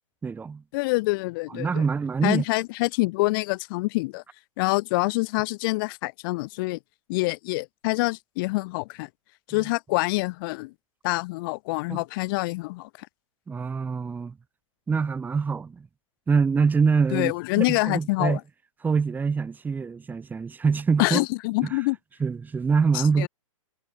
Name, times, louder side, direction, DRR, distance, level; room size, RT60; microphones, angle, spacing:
voice 1, 0.2-0.6 1.5-2.4 11.9-12.0 13.5-14.4 14.9-15.9 16.3-18.4 18.8-21.2 21.6-21.8 22.2-23.3, right 5 dB, 10° right, 1.7 m, -25 dB
voice 2, 0.7-1.8 2.2-4.2 4.6-6.8 7.1-9.1 9.5-10.7 11.0-13.1 17.1-18.4 21.0-22.0 22.9-23.3, left 24 dB, 40° left, 2.9 m, -26 dB
figure-of-eight pair, 115°, 17 cm